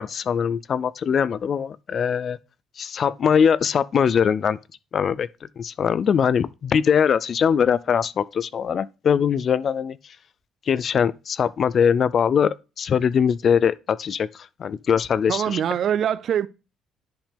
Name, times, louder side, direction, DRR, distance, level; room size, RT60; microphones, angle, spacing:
voice 1, 0.0-2.4 2.8-4.6 4.9-5.3 5.6-10.0 10.7-14.3 14.6-15.6, left 7 dB, 45° left, 0.3 m, -21 dB
voice 2, 15.3-16.5, right 9 dB, 55° right, 0.4 m, -23 dB
10.5 x 5.2 x 3.3 m
cardioid pair, 135°, 0 cm